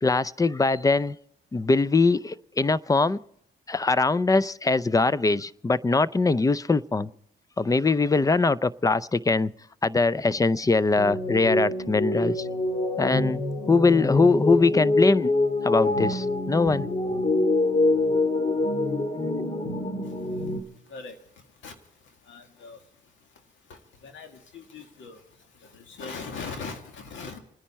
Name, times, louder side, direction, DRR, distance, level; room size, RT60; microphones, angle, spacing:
voice 1, 0.0-1.2 1.5-3.2 3.7-7.1 7.6-9.5 9.8-12.5 13.0-15.3 15.6-16.9, left 3 dB, 15° left, 0.5 m, -22 dB
sound 1, 10.9-20.6, left 2 dB, 35° left, 2.0 m, -25 dB
voice 2, 22.3-22.8 24.0-24.3 24.5-25.2 25.9-27.4, left 4 dB, 75° left, 2.0 m, -39 dB
28.5 x 10.0 x 4.3 m
cardioid pair, 90°, 20 cm